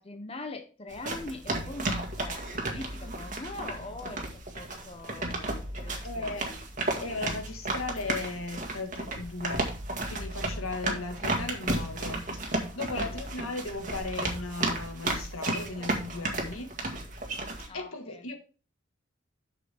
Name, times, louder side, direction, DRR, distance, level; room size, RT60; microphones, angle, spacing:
voice 1, 0.0-6.6 12.9-13.2 17.7-18.3, left 2 dB, 25° left, 0.8 m, -43 dB
sound 1, 0.9-17.7, right 2 dB, 35° right, 1.8 m, -33 dB
voice 2, 6.0-6.4 7.0-9.7 10.1-16.7 17.7-18.4, left 3 dB, 90° left, 1.8 m, -36 dB
7.3 x 6.8 x 3.5 m
head